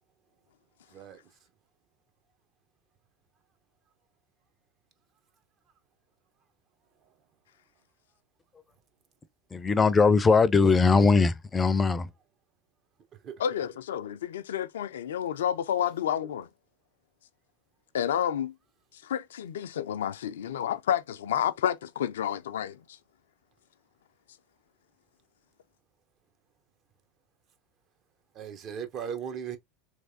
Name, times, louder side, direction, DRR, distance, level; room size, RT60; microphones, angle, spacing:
voice 1, 9.5-12.1, left 4 dB, 20° left, 0.5 m, -21 dB
voice 2, 13.4-16.5 17.9-18.5 19.0-22.8, left 9 dB, 80° left, 0.4 m, -30 dB
voice 3, 28.3-29.6, right 8 dB, 45° right, 1.0 m, -37 dB
3.2 x 3.2 x 2.7 m
hypercardioid pair, 85°, 0 cm